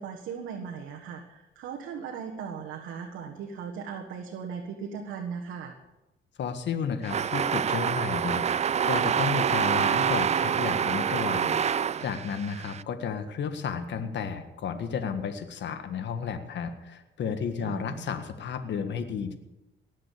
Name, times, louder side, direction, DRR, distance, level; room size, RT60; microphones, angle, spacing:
voice 1, 0.0-5.7 17.6-18.0, right 6 dB, 85° right, 1 dB, 1.6 m, -38 dB
voice 2, 6.4-11.6 12.0-19.4, left 6 dB, 65° left, 8 dB, 1.6 m, -32 dB
sound 1, 7.0-12.8, right 8 dB, 35° right, 0.4 m, -26 dB
19.0 x 7.5 x 8.4 m, 0.99 s
cardioid pair, 90°, 20 cm